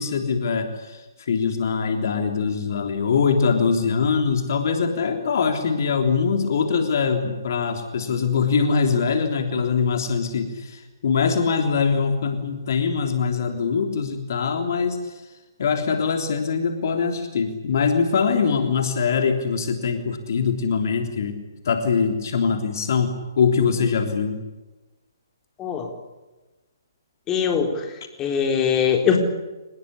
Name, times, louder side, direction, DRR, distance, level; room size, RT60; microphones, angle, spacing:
voice 1, 0.0-15.0 15.6-21.4 21.7-24.4, left 5 dB, 55° left, 5 dB, 3.4 m, -23 dB
voice 2, 25.6-25.9 27.3-27.9 28.2-29.2, left 7 dB, 20° left, 3 dB, 4.1 m, -21 dB
26.0 x 20.0 x 9.9 m, 1.1 s
figure-of-eight pair, 130°, 2 cm